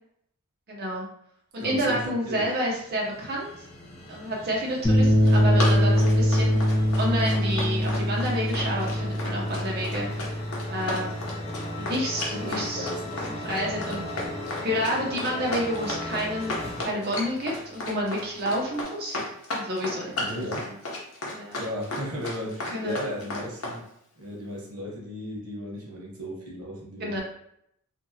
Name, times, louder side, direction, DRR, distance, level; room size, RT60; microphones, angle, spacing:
voice 1, 0.7-1.1 1.5-3.5 4.1-6.7 7.0-10.3 10.7-11.3 11.8-12.9 13.2-14.2 14.6-19.2 19.5-20.7 21.3-21.5 22.7-23.0 27.0-27.2, equal, 45° right, -3 dB, 0.7 m, -30 dB
voice 2, 1.6-2.5 4.9-5.1 12.3-13.1 20.2-20.7 21.5-23.8 24.2-27.2, equal, 90° right, -2 dB, 0.9 m, -35 dB
sound 1, 2.2-16.8, left 1 dB, 30° left, 0.5 m, -38 dB
sound 2, 4.8-13.3, equal, 15° left, 1.0 m, -24 dB
Run, 5.0-23.8, left 2 dB, 85° left, 0.8 m, -33 dB
2.7 x 2.6 x 2.6 m, 0.73 s
head